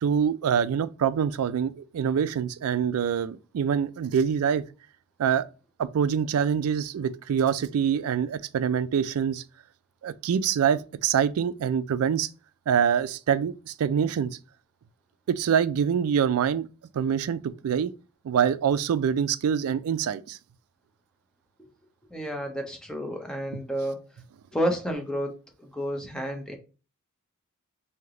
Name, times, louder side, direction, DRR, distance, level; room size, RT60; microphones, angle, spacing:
voice 1, 0.0-4.6 5.2-5.4 5.8-9.4 10.0-12.3 12.7-14.3 15.3-16.7 16.9-17.9 18.2-20.4, right 8 dB, 75° right, 0.3 m, -25 dB
voice 2, 22.1-24.0 24.5-26.6, equal, 5° left, 0.6 m, -30 dB
3.3 x 2.8 x 3.6 m
head